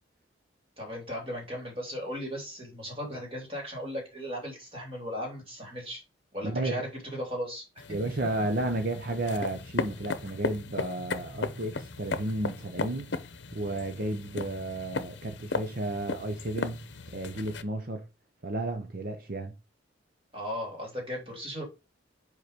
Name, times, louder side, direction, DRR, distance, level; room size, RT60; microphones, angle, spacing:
voice 1, 0.8-6.0 6.3-7.6 20.3-21.6, equal, 30° right, 3.2 m, -36 dB
voice 2, 6.4-6.8 7.9-13.1 13.5-18.0 18.4-19.5, right 2 dB, 50° right, 0.8 m, -32 dB
sound 1, 7.8-17.6, left 3 dB, 70° left, 0.8 m, -36 dB
5.4 x 4.8 x 5.1 m
head